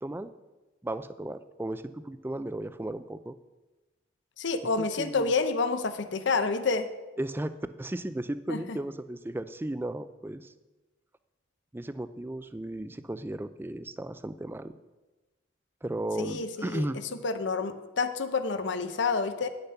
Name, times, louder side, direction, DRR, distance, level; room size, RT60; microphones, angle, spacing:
voice 1, 0.0-0.3 0.8-3.4 5.0-5.3 7.2-10.5 11.7-14.7 15.8-17.0, right 1 dB, 10° right, 12 dB, 0.3 m, -35 dB
voice 2, 4.4-6.9 8.5-8.8 16.2-19.5, left 4 dB, 65° left, 10 dB, 0.7 m, -29 dB
9.8 x 6.7 x 5.8 m, 1.1 s
head